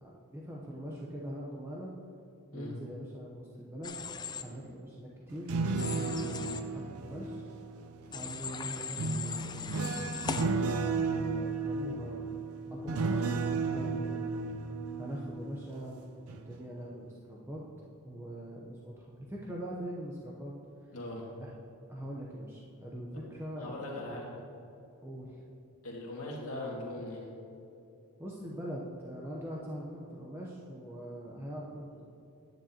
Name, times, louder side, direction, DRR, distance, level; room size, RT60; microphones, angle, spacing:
voice 1, 0.0-1.9 2.5-4.0 4.3-7.5 8.1-9.7 11.0-12.3 12.7-14.3 15.0-17.6 18.0-20.5 20.8-20.9 21.4-21.5 21.9-24.1 25.0-25.4 28.2-32.1, equal, 10° right, -4 dB, 0.7 m, -43 dB
Human voice / Train, 3.8-4.4 5.8-6.6 8.1-10.4, left 5 dB, 20° left, 0.4 m, -39 dB
sound 1, 5.3-8.2 9.0-15.9 16.3-16.6, right 4 dB, 70° right, 0.5 m, -34 dB
voice 2, 20.9-21.3 23.1-23.2 23.6-24.3 25.8-27.3, left 1 dB, 75° left, -3 dB, 2.0 m, -40 dB
10.0 x 9.5 x 2.8 m, 2.6 s
head